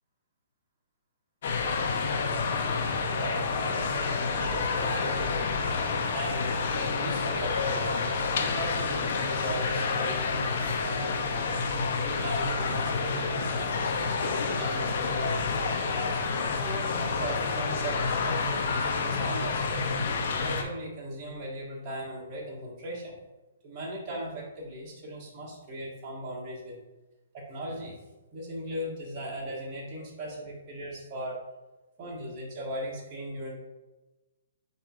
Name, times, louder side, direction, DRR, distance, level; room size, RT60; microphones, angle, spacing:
sound 1, 1.4-20.6, left 4 dB, 60° left, 0.6 m, -29 dB
voice 1, 2.5-5.5 6.1-11.6 12.2-15.4 15.9-19.8 20.4-23.2 23.6-26.8 27.3-28.0 28.3-31.4 32.0-33.5, right 1 dB, 30° right, -5 dB, 1.4 m, -38 dB
8.1 x 2.7 x 2.4 m, 1.1 s
hypercardioid pair, 145°, 0 cm